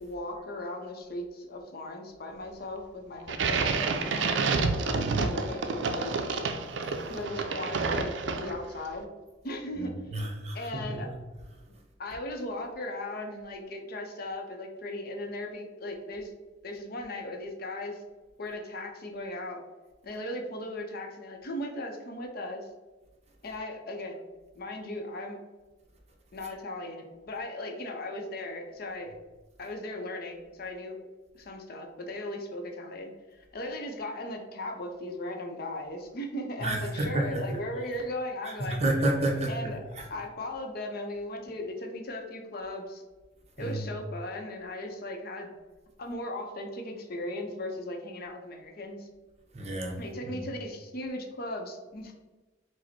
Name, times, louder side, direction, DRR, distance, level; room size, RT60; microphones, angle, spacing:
voice 1, 0.0-6.2 7.1-9.1 9.4-11.1 12.0-16.3 16.6-18.0 18.4-19.6 20.0-22.7 23.4-24.2 24.5-25.4 26.3-29.1 29.6-30.9 31.3-38.8 39.5-39.8 40.1-43.0 43.6-45.5 46.0-49.1 50.0-52.1, left 1 dB, 55° left, 3 dB, 0.6 m, -37 dB
sound 1, 3.3-8.8, right 4 dB, 70° right, 0.4 m, -29 dB
voice 2, 9.8-11.1 36.6-37.6 38.4-39.5 40.0-40.1 43.6-43.9 49.5-50.4, right 1 dB, 35° right, 0 dB, 0.7 m, -30 dB
5.0 x 2.1 x 4.3 m, 1.2 s
head